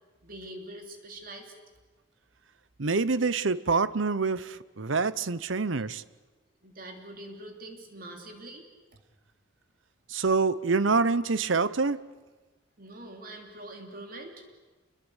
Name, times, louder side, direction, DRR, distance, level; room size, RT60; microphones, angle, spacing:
voice 1, 0.2-1.5 6.6-8.7 12.8-14.3, right 1 dB, 45° right, 4 dB, 3.3 m, -44 dB
voice 2, 2.8-6.0 10.1-12.0, right 4 dB, 80° right, 17 dB, 0.9 m, -26 dB
28.0 x 23.0 x 8.2 m, 1.3 s
head